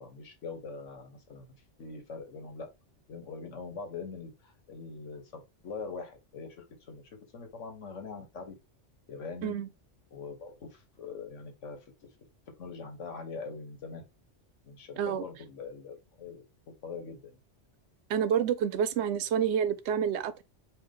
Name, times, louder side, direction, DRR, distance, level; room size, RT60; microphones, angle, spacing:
voice 1, 0.0-1.5 1.8-2.7 3.1-7.0 7.3-8.6 9.1-9.6 10.1-11.8 12.6-14.0 14.6-16.4 16.8-17.4, left 4 dB, 85° left, 1.4 m, -42 dB
voice 2, 18.1-20.4, right 8 dB, 70° right, 0.9 m, -28 dB
5.9 x 2.5 x 3.6 m
omnidirectional pair, 1.2 m